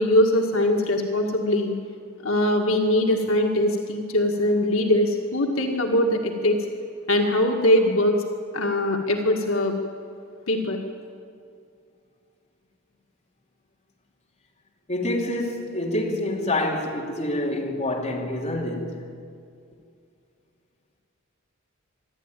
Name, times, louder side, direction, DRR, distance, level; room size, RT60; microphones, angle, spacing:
voice 1, 0.0-1.7 2.2-6.6 7.1-8.2 8.5-9.8 10.5-10.8, left 1 dB, 80° left, 1.9 m, -21 dB
voice 2, 14.9-19.0, left 1 dB, 35° left, 3.0 m, -27 dB
25.5 x 12.0 x 9.1 m
head